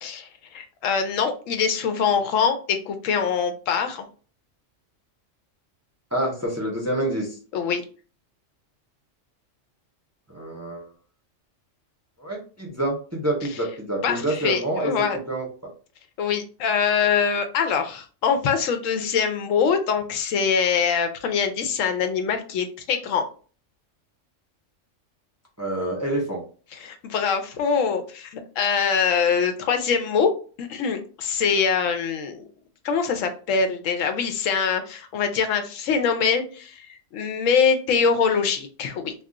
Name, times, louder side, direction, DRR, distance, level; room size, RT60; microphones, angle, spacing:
voice 1, 0.0-4.0 7.5-7.8 14.0-15.2 16.2-23.3 26.7-30.3 30.6-32.4 32.8-39.1, left 6 dB, 85° left, 7 dB, 1.0 m, -23 dB
voice 2, 6.1-7.4 10.3-10.9 12.2-14.9 15.3-15.5 25.6-26.4, right 1 dB, 15° right, -2 dB, 0.5 m, -27 dB
2.4 x 2.4 x 3.7 m, 0.38 s
omnidirectional pair, 1.3 m